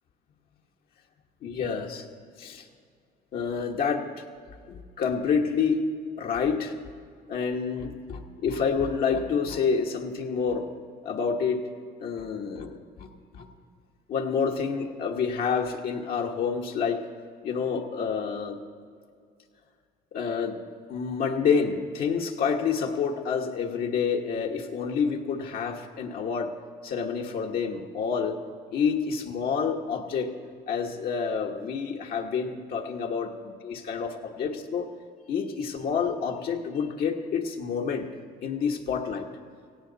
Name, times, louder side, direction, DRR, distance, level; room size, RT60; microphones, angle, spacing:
voice 1, 1.4-2.1 2.4-2.7 3.3-4.0 4.7-5.8 6.2-6.8 7.3-10.7 11.0-11.6 12.0-13.1 13.3-13.5 14.1-17.0 17.4-18.6 20.1-20.6 20.9-26.5 26.8-28.4 28.7-30.3 30.7-34.9 35.3-38.1 38.4-39.3, left 6 dB, 65° left, 1 dB, 1.4 m, -28 dB
17.5 x 16.5 x 4.1 m, 2.1 s
cardioid pair, 110°, 17 cm